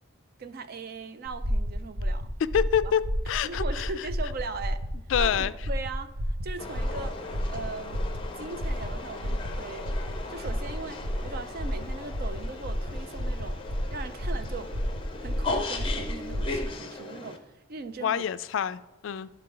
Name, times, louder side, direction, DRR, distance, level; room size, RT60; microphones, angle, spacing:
voice 1, 0.4-2.3 2.8-2.9 3.4-4.9 5.2-6.1 6.4-7.2 7.5-8.0 8.4-9.9 10.3-13.6 13.9-14.7 15.2-17.4 17.7-18.2, right 3 dB, 45° right, 0.4 m, -39 dB
sound 1, 1.3-16.7, equal, 80° right, 0.8 m, -31 dB
voice 2, 2.5-3.0 3.3-4.1 5.1-5.5 18.0-19.3, left 8 dB, 65° left, 0.3 m, -27 dB
sound 2, 6.6-17.4, left 3 dB, 25° left, 0.6 m, -38 dB
11.5 x 4.6 x 3.8 m
head